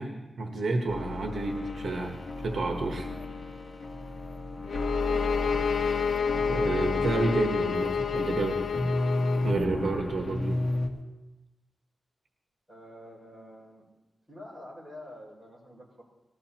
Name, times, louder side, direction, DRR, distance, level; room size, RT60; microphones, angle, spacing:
voice 1, 0.0-3.1 6.3-8.6 9.4-10.6, right 3 dB, 70° right, 2 dB, 1.3 m, -30 dB
sound 1, 0.9-10.9, left 2 dB, 50° left, 1.4 m, -33 dB
sound 2, 4.7-9.6, left 6 dB, 90° left, 0.6 m, -29 dB
voice 2, 12.7-13.9 14.3-16.0, left 1 dB, 15° right, -4 dB, 5.4 m, -47 dB
19.5 x 13.5 x 2.9 m, 1.1 s
wide cardioid pair, 125°, 0 cm